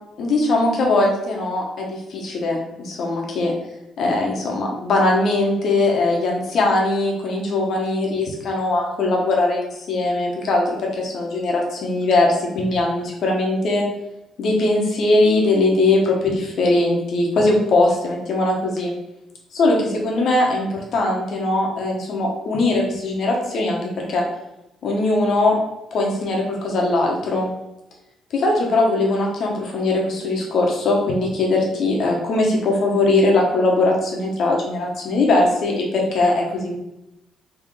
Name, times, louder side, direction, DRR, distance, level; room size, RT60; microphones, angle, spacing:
voice 1, 0.2-3.5 4.0-13.8 14.4-18.9 19.5-24.2 24.8-25.6 25.9-27.5 28.3-36.8, left 2 dB, 65° left, -1 dB, 1.1 m, -20 dB
3.7 x 3.2 x 3.2 m, 0.92 s
cardioid pair, 90°, 0 cm